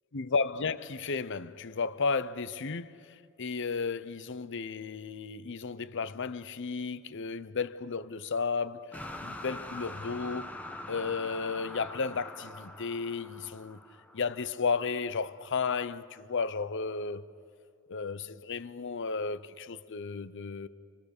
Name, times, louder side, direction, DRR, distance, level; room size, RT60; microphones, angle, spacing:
voice 1, 0.1-3.0 3.4-8.9 9.2-10.5 10.9-13.8 14.1-17.2 17.9-20.7, left 5 dB, 60° left, 0.8 m, -33 dB
sound 1, 8.9-15.0, left 1 dB, 5° left, 1.0 m, -44 dB
27.0 x 25.0 x 6.6 m
head